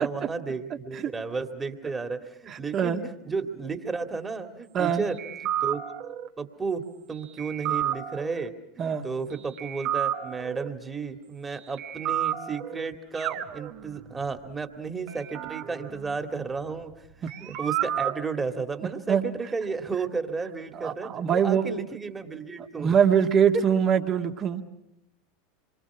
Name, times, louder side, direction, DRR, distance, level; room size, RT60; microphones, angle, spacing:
voice 1, 0.0-5.2 5.6-5.9 6.4-6.8 7.1-17.1 17.4-23.0, right 4 dB, 20° right, 6 dB, 2.2 m, -33 dB
voice 2, 0.7-1.1 2.5-3.0 4.7-5.0 8.8-9.1 17.2-17.3 18.8-19.2 20.7-21.7 22.6-24.6, right 7 dB, 40° right, 5 dB, 1.9 m, -24 dB
sound 1, 5.2-6.3 7.4-8.5 9.6-10.7 11.8-12.9 13.1-14.2 15.1-16.9 17.3-18.2, right 11 dB, 55° right, 1.4 m, -31 dB
27.0 x 23.5 x 6.1 m, 0.81 s
hypercardioid pair, 85°, 0 cm